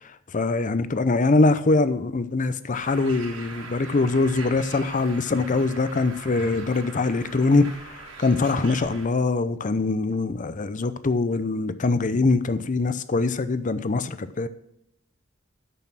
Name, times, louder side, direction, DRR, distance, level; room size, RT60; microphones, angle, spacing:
voice 1, 0.3-7.7 8.2-14.5, left 3 dB, 40° left, 14 dB, 0.6 m, -23 dB
Bird, 2.7-9.1, right 3 dB, 80° right, 2.7 m, -41 dB
9.0 x 6.3 x 6.0 m, 0.79 s
head